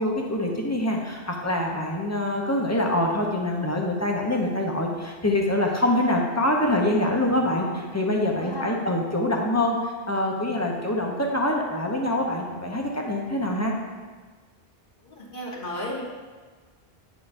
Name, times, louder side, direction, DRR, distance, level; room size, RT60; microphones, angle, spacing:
voice 1, 0.0-13.7, left 1 dB, 20° left, 0 dB, 0.7 m, -25 dB
voice 2, 7.4-7.8 8.0-8.7 15.0-16.0, left 1 dB, 55° left, -4 dB, 1.4 m, -35 dB
8.4 x 6.3 x 2.6 m, 1.4 s
omnidirectional pair, 1.0 m